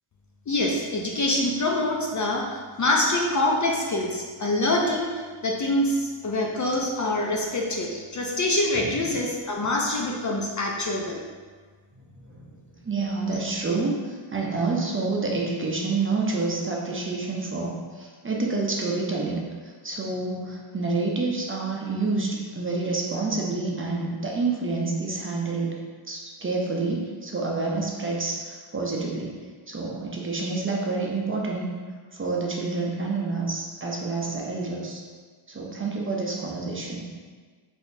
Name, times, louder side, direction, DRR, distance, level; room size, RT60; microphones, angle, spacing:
voice 1, 0.5-2.4 2.8-11.2, left 1 dB, 35° left, -1 dB, 0.6 m, -25 dB
voice 2, 8.7-9.1 11.9-12.5 12.8-19.4 19.8-25.7 26.1-29.3 29.7-31.7 32.1-35.0 35.5-37.1, right 3 dB, 25° right, -2 dB, 0.7 m, -28 dB
4.1 x 3.4 x 2.7 m, 1.5 s
cardioid pair, 80°, 50 cm